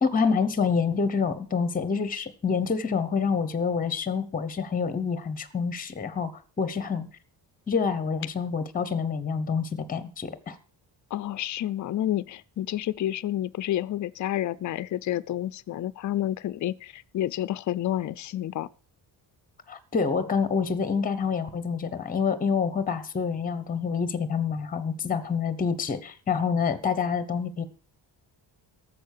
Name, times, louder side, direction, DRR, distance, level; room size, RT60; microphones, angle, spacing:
voice 1, 0.0-6.3 6.6-7.1 7.7-10.6 19.7-27.6, left 5 dB, 20° left, 0.9 m, -27 dB
voice 2, 11.1-18.7, left 12 dB, 45° left, 0.5 m, -29 dB
13.0 x 7.3 x 6.5 m
wide cardioid pair, 175°, 44 cm